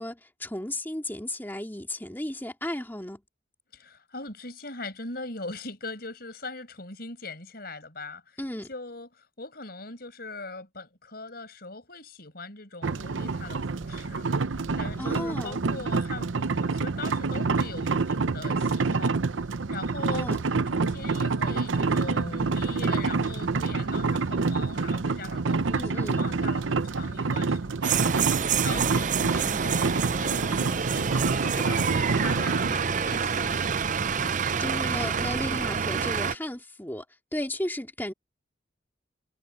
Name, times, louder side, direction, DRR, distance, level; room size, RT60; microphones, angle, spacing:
voice 1, 0.0-3.2 8.4-8.7 15.0-15.6 20.1-20.4 25.7-26.2 34.6-37.1 37.3-38.1, left 1 dB, 10° left, 2.8 m, -34 dB
voice 2, 3.7-8.4 8.7-14.3 14.8-20.3 20.7-28.1 28.6-33.7 34.2-34.4, left 3 dB, 50° left, 6.4 m, -41 dB
sound 1, 12.8-32.7, right 4 dB, 85° right, 0.7 m, -27 dB
sound 2, 27.8-36.3, right 6 dB, 40° right, 0.5 m, -27 dB
head